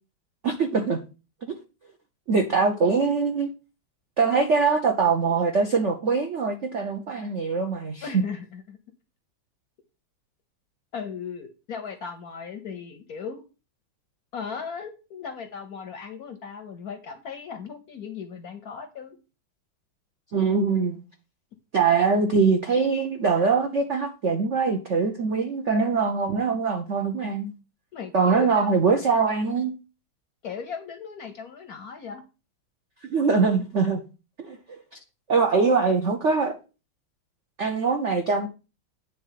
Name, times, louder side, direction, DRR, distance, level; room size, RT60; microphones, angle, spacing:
voice 1, 0.4-1.0 1.4-1.5 2.3-3.5 4.2-8.2 20.3-21.0 21.7-27.5 28.1-29.7 33.1-34.0 34.4-34.8 35.3-36.6 37.6-38.5, right 4 dB, 65° right, 0.7 m, -23 dB
voice 2, 8.0-8.8 10.9-13.4 14.3-19.2 27.9-28.8 30.4-32.2, left 6 dB, 60° left, 1.0 m, -37 dB
9.3 x 3.6 x 5.7 m
omnidirectional pair, 2.3 m